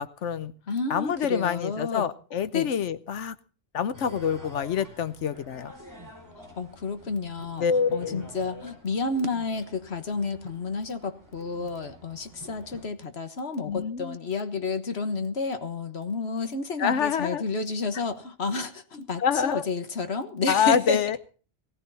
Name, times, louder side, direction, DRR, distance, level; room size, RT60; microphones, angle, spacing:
voice 1, 0.0-0.5 0.9-3.4 3.7-5.7 7.6-8.3 13.7-14.2 16.8-17.4 19.2-19.7 20.5-21.2, left 7 dB, 85° left, 14 dB, 1.2 m, -26 dB
voice 2, 0.7-2.1 2.5-2.7 6.6-7.7 7.9-21.0, left 3 dB, 65° left, 9 dB, 1.6 m, -30 dB
sound 1, 3.9-12.9, equal, 15° right, 4.8 m, -48 dB
18.5 x 15.0 x 4.1 m, 0.39 s
omnidirectional pair, 1.2 m